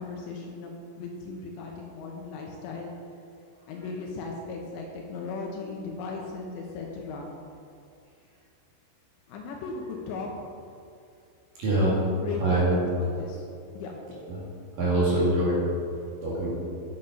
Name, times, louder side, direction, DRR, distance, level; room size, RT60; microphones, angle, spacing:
voice 1, 0.0-2.9 3.7-7.3 9.3-10.5 12.0-12.6 13.0-13.4 13.7-13.9, left 4 dB, 75° left, 0 dB, 2.9 m, -37 dB
voice 2, 11.6-12.0 12.4-12.7 14.3-14.4 14.8-15.6 16.2-16.6, right 1 dB, 50° right, -7 dB, 3.2 m, -24 dB
11.0 x 7.3 x 5.3 m, 2.5 s
omnidirectional pair, 5.7 m